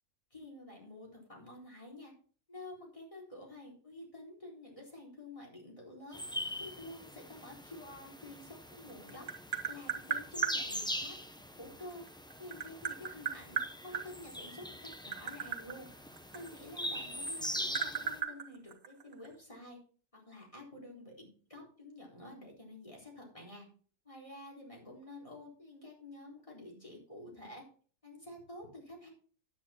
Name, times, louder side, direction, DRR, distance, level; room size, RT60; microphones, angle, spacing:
voice 1, 0.3-2.1 2.5-6.2 6.6-9.3 9.6-11.2 11.6-12.0 12.4-15.9 16.3-19.8 20.1-23.7 24.0-27.6 28.0-29.1, left 1 dB, 20° left, -2 dB, 4.1 m, -50 dB
sound 1, 6.1-18.2, left 1 dB, 5° left, 0.6 m, -42 dB
Tap, 8.7-10.6 11.9-14.1 14.8-17.0 17.3-19.3, right 7 dB, 70° right, 1.9 m, -36 dB
10.0 x 9.4 x 4.3 m, 0.43 s
omnidirectional pair, 1.6 m